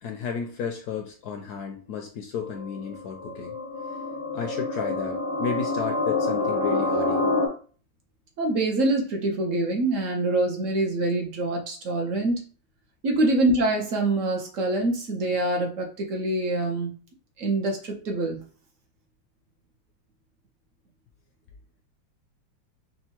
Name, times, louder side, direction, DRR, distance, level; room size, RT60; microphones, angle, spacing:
voice 1, 0.0-3.5 4.3-7.3, left 6 dB, 70° left, 4 dB, 1.0 m, -33 dB
sound 1, 2.4-7.5, left 2 dB, 25° right, 0.5 m, -27 dB
voice 2, 8.4-12.4 13.0-17.0 17.4-18.4, right 2 dB, 55° right, 1 dB, 0.9 m, -25 dB
5.4 x 2.2 x 2.9 m, 0.39 s
omnidirectional pair, 2.0 m